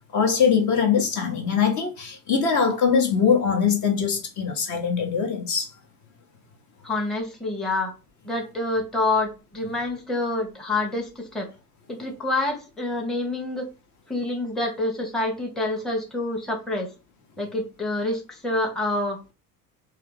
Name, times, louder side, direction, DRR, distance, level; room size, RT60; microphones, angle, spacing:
voice 1, 0.1-5.7, left 6 dB, 35° left, 0.9 m, -22 dB
voice 2, 6.8-7.9 8.2-11.5 11.9-13.7 14.1-16.9 17.4-19.2, left 2 dB, ahead, 0.8 m, -27 dB
3.2 x 2.4 x 3.2 m
figure-of-eight pair, 65°, 47 cm